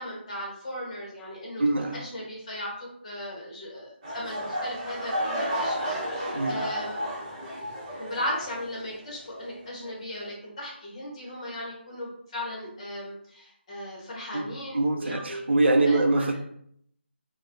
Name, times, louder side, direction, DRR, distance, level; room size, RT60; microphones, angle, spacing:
voice 1, 0.0-7.0 8.0-15.4 15.8-16.2, left 1 dB, 30° left, -4 dB, 1.0 m, -37 dB
voice 2, 1.6-2.0 6.3-6.7 14.3-16.4, right 2 dB, 65° right, 4 dB, 0.4 m, -24 dB
sound 1, 4.0-9.0 9.3-9.7 10.2-10.3, equal, 30° right, 0.9 m, -32 dB
3.1 x 2.1 x 2.5 m, 0.68 s
figure-of-eight pair, 170°, 6 cm